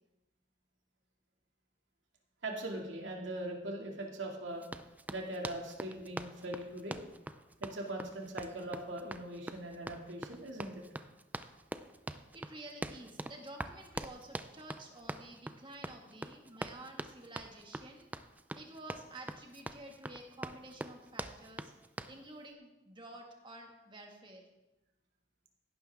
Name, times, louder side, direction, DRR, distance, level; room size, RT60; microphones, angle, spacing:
voice 1, 2.4-4.7 5.1-7.0 7.6-10.8, right 1 dB, 75° right, 0 dB, 2.4 m, -41 dB
Run, 4.6-22.2, right 1 dB, 10° right, 0.4 m, -44 dB
voice 2, 12.3-18.1 18.6-21.7 22.1-24.5, right 1 dB, 25° right, 1 dB, 1.9 m, -51 dB
16.0 x 11.5 x 3.6 m, 1.0 s
head